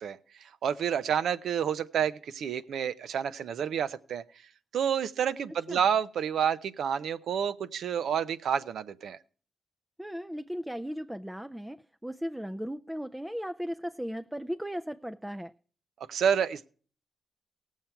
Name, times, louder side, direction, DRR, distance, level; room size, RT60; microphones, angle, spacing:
voice 1, 0.0-4.2 4.7-9.2 16.1-16.7, right 8 dB, 75° right, 0.6 m, -29 dB
voice 2, 10.0-15.5, equal, 5° right, 0.4 m, -36 dB
17.5 x 7.4 x 4.5 m
cardioid pair, 60°, 0 cm